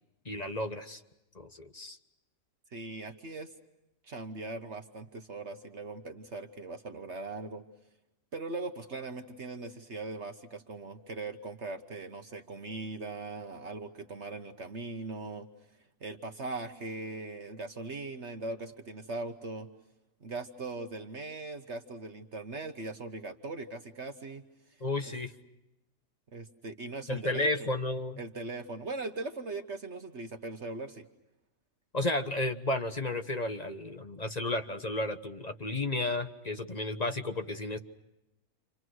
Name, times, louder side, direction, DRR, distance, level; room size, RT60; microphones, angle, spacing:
voice 1, 0.2-1.0 1.3-2.0 24.8-25.3 27.1-28.2 31.9-37.8, left 2 dB, 30° left, 7 dB, 1.1 m, -32 dB
voice 2, 2.7-3.5 4.0-7.6 8.3-15.5 16.0-19.7 20.2-24.4 25.0-25.1 26.3-27.7 28.2-31.1, right 3 dB, 50° right, 6 dB, 1.4 m, -40 dB
30.0 x 27.0 x 6.3 m, 0.91 s
omnidirectional pair, 1.6 m